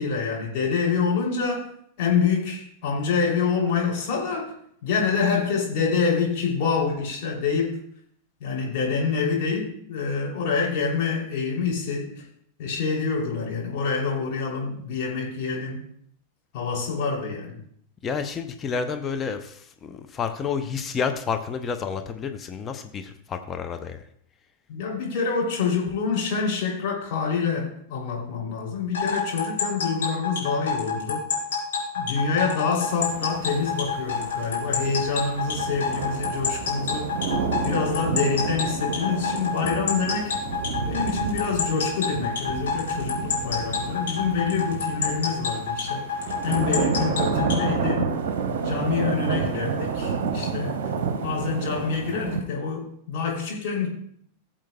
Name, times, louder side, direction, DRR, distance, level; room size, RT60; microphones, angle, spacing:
voice 1, 0.0-1.7 2.0-4.5 4.8-7.8 8.4-12.2 12.6-15.8 16.5-17.6 24.7-31.3 31.9-37.1 37.6-40.4 40.9-46.1 46.4-48.1 48.6-50.8 51.2-53.9, left 5 dB, 45° left, -2 dB, 3.0 m, -26 dB
voice 2, 18.0-24.0, left 6 dB, 25° left, 7 dB, 0.7 m, -30 dB
sound 1, 28.9-47.7, left 6 dB, 60° left, 3.6 m, -27 dB
sound 2, 32.8-52.4, right 6 dB, 50° right, 0.9 m, -30 dB
16.5 x 7.5 x 2.3 m, 0.66 s
figure-of-eight pair, 90°, 0 cm